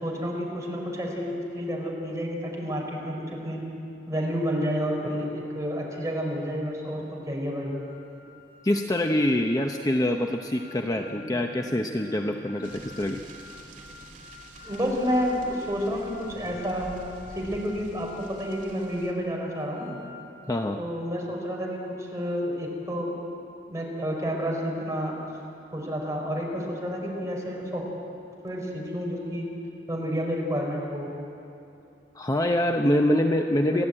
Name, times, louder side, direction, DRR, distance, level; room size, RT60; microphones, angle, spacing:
voice 1, 0.0-3.6 4.1-7.7 14.6-16.9 17.3-20.0 20.8-23.1 23.7-25.1 25.7-27.8 28.4-29.5 29.9-31.1 33.7-33.9, equal, 20° right, -1 dB, 4.4 m, -30 dB
sound 1, 7.8-20.5, left 4 dB, 80° right, 3.4 m, -50 dB
voice 2, 8.6-13.2 20.5-20.8 32.1-33.8, left 1 dB, 20° left, 3 dB, 0.8 m, -25 dB
sound 2, 10.9-16.5, equal, 50° left, 7.2 m, -49 dB
sound 3, 12.6-19.1, right 1 dB, 50° right, 2.5 m, -48 dB
29.5 x 11.5 x 8.8 m, 2.8 s
head